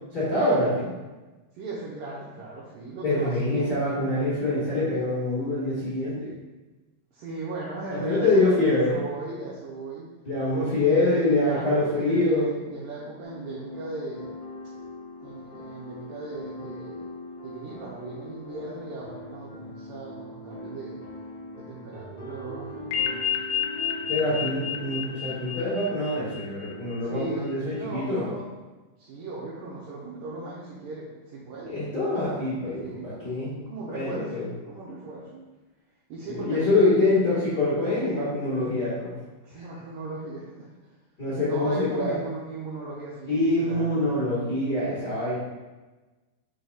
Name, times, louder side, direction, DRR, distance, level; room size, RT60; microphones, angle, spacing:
voice 1, 0.1-0.9 3.0-6.3 7.9-9.0 10.2-12.5 24.1-28.2 31.7-33.6 33.9-34.4 36.2-39.1 39.5-39.6 41.2-42.1 43.3-45.4, left 2 dB, 50° left, -10 dB, 1.2 m, -25 dB
voice 2, 1.5-3.7 7.1-10.1 10.5-14.3 15.2-17.1 17.4-21.0 21.6-23.3 27.0-28.5 29.0-31.9 32.8-33.1 33.7-35.5 36.1-37.1 39.4-40.9 41.4-44.2, right 2 dB, 75° right, -6 dB, 2.2 m, -37 dB
sound 1, 13.2-24.9, left 1 dB, 30° left, 1.8 m, -41 dB
sound 2, 22.9-27.0, left 9 dB, 75° left, 2.5 m, -31 dB
6.6 x 6.5 x 2.3 m, 1.2 s
omnidirectional pair, 4.5 m